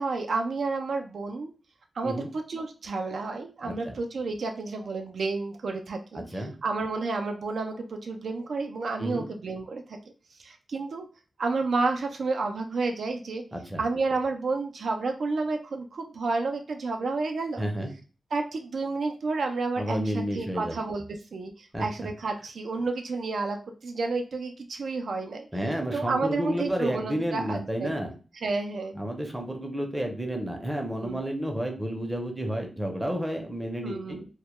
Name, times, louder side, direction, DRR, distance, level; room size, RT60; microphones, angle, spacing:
voice 1, 0.0-1.5 2.0-10.0 10.4-11.1 11.4-13.4 13.8-17.7 18.3-21.0 21.3-25.5 25.9-27.9 28.4-29.0 31.0-31.2 33.8-34.3, right 3 dB, 70° right, 4 dB, 0.3 m, -30 dB
voice 2, 3.6-4.0 6.1-6.5 9.0-9.3 13.5-13.8 17.6-17.9 19.8-20.7 21.7-21.9 25.5-28.1 28.9-34.2, equal, 10° right, 2 dB, 0.5 m, -31 dB
2.1 x 2.0 x 2.9 m, 0.36 s
wide cardioid pair, 140°, 0 cm